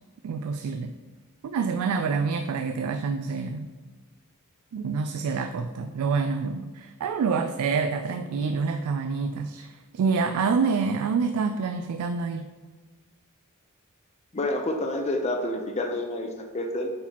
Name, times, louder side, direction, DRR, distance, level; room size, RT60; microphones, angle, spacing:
voice 1, 0.2-0.9 1.4-3.7 4.7-12.5, right 5 dB, 75° right, 8 dB, 0.3 m, -27 dB
voice 2, 14.3-16.9, left 1 dB, 30° left, 3 dB, 0.6 m, -28 dB
8.4 x 4.0 x 3.0 m, 1.4 s
head